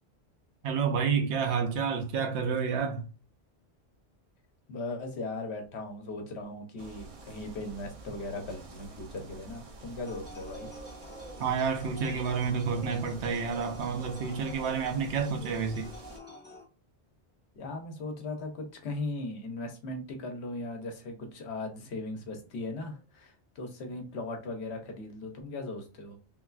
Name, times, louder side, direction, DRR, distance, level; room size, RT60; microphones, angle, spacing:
voice 1, 0.6-3.0 11.4-15.9, right 6 dB, 85° right, 0.9 m, -29 dB
voice 2, 4.7-10.7 17.5-26.2, left 2 dB, 75° left, 1.0 m, -38 dB
sound 1, 6.8-16.2, right 2 dB, 50° right, 0.4 m, -47 dB
sound 2, 10.0-16.6, left 1 dB, 15° left, 0.4 m, -50 dB
3.2 x 2.3 x 2.4 m
omnidirectional pair, 1.1 m